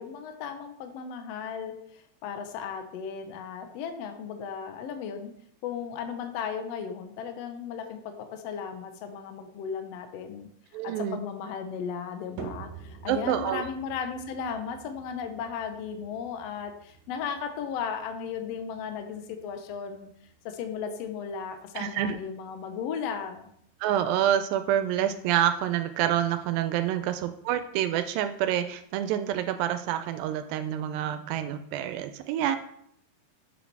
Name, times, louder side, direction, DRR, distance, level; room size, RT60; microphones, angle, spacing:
voice 1, 0.0-5.3 5.6-10.5 10.8-20.1 20.4-23.5, left 6 dB, 80° left, 6 dB, 1.5 m, -36 dB
voice 2, 10.7-11.2 13.1-13.7 21.8-22.2 23.8-32.6, right 11 dB, 85° right, 10 dB, 2.3 m, -27 dB
sound 1, 12.4-28.8, right 6 dB, 70° right, 2.3 m, -50 dB
7.0 x 6.2 x 4.6 m, 0.71 s
omnidirectional pair, 4.0 m